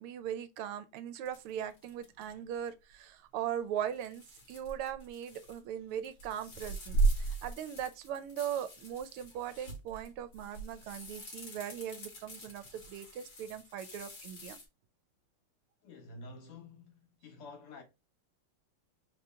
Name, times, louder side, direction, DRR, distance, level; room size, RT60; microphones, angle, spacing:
voice 1, 0.0-4.2 4.5-14.6, right 10 dB, 85° right, 1.6 m, -39 dB
sound 1, 1.3-2.3 3.9-5.6 5.9-14.7, right 3 dB, 55° left, 2.4 m, -37 dB
voice 2, 15.8-17.8, left 3 dB, 85° left, 2.3 m, -50 dB
4.5 x 3.0 x 3.4 m
omnidirectional pair, 2.4 m